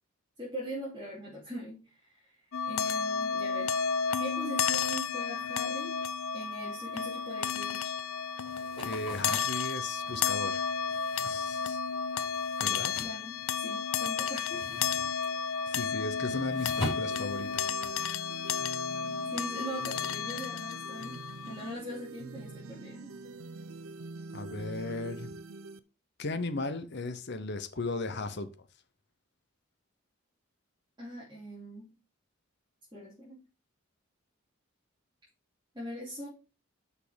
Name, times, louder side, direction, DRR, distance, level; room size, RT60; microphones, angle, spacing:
voice 1, 0.4-6.0 6.3-7.9 13.0-15.3 19.3-23.1 31.0-31.9 32.9-33.4 35.7-36.3, equal, 20° right, 2.9 m, -42 dB
sound 1, 2.5-21.7, left 6 dB, 80° left, 0.6 m, -32 dB
sound 2, 8.4-13.9 14.2-18.1, left 1 dB, 25° left, 4.1 m, -42 dB
voice 2, 8.8-10.6 11.2-11.8 12.6-12.9 15.7-17.7 24.3-25.3 26.2-28.5, left 2 dB, 55° left, 1.0 m, -36 dB
sound 3, 16.2-25.8, right 3 dB, 85° right, 0.6 m, -45 dB
6.4 x 5.5 x 5.2 m
head